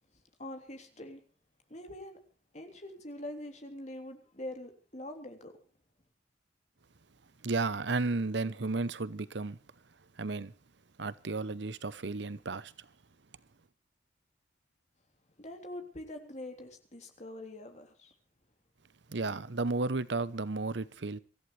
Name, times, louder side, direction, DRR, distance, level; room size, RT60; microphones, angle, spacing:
voice 1, 0.4-1.2 1.7-2.2 2.5-5.5 15.4-18.1, left 1 dB, 35° left, 3.3 m, -44 dB
voice 2, 7.4-9.6 10.2-10.5 11.0-12.9 19.1-21.2, right 3 dB, 65° right, 0.9 m, -33 dB
24.5 x 14.5 x 3.3 m
head